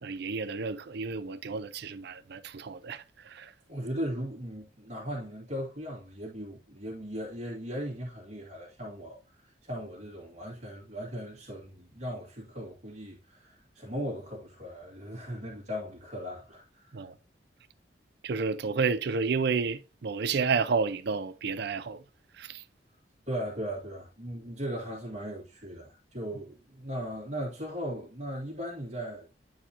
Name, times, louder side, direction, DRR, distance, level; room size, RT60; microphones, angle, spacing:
voice 1, 0.0-3.5 16.9-17.1 18.2-22.0 22.4-22.6, right 5 dB, 65° right, 0.5 m, -31 dB
voice 2, 3.7-9.2 9.6-17.0 23.3-29.3, equal, 40° right, 2.1 m, -38 dB
9.8 x 4.7 x 2.9 m
head